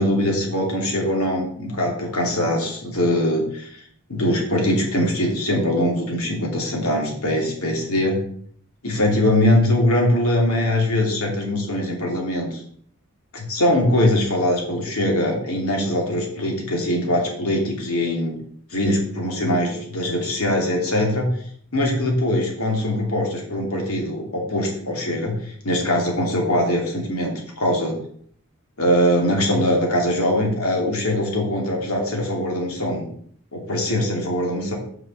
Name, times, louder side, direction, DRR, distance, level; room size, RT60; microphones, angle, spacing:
voice 1, 0.0-3.8 4.1-8.2 8.8-12.6 13.3-18.3 18.7-21.3 21.7-28.0 28.8-33.1 33.5-34.7, left 1 dB, 80° left, 0 dB, 2.7 m, -22 dB
6.2 x 5.8 x 6.4 m, 0.62 s
head